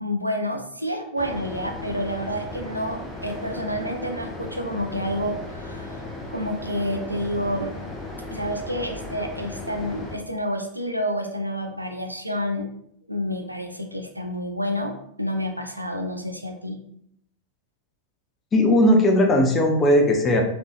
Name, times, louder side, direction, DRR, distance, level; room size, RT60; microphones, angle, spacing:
voice 1, 0.0-6.0 6.3-7.7 8.3-12.7 13.1-14.9 15.2-16.8, equal, 90° right, 4 dB, 0.4 m, -29 dB
sound 1, 1.2-10.2, left 2 dB, 5° left, 1.0 m, -36 dB
voice 2, 18.5-20.4, left 1 dB, 25° left, 2 dB, 0.7 m, -18 dB
3.6 x 3.4 x 2.4 m, 0.70 s
figure-of-eight pair, 90°, 0 cm